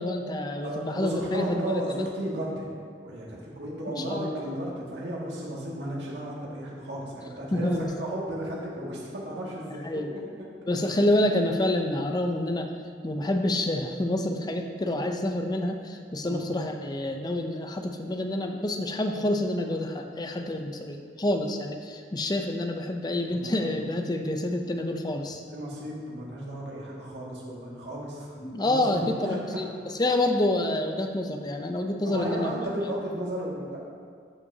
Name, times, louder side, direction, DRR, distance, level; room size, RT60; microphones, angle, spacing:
voice 1, 0.0-2.1 3.9-4.4 7.5-8.0 9.8-10.1 10.7-12.7 13.0-25.4 28.4-29.7 30.0-32.5, left 1 dB, 25° left, 4 dB, 0.5 m, -28 dB
voice 2, 0.6-2.7 3.0-7.7 8.0-10.0 16.3-16.4 23.3-23.8 25.5-29.6 32.0-33.8, right 1 dB, 85° right, -5 dB, 2.0 m, -34 dB
13.0 x 5.7 x 2.8 m, 2.1 s
head